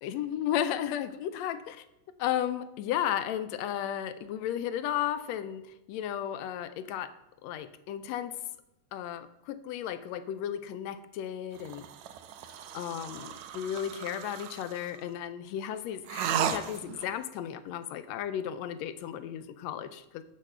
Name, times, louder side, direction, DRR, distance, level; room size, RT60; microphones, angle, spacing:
voice 1, 0.0-1.8 2.2-7.1 7.4-8.3 8.9-11.9 12.7-20.2, left 10 dB, 80° left, 11 dB, 1.6 m, -34 dB
sound 1, 11.6-15.0 16.1-17.1, right 8 dB, 75° right, 2.0 m, -35 dB
7.9 x 7.5 x 6.6 m, 0.89 s
omnidirectional pair, 3.4 m